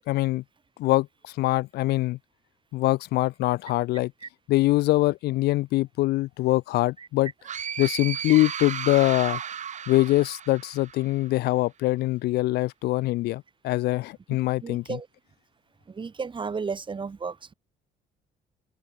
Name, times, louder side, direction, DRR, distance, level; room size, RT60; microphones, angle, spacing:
voice 1, 0.1-0.4 0.8-2.2 2.7-4.1 4.5-7.3 7.8-9.4 9.9-14.8, left 18 dB, 70° left, 0.4 m, -23 dB
sound 1, 7.4-11.1, right 8 dB, 45° right, 3.1 m, -34 dB
voice 2, 14.6-15.1 15.9-17.5, right 5 dB, 30° right, 6.4 m, -33 dB
open air
cardioid pair, 110°, 17 cm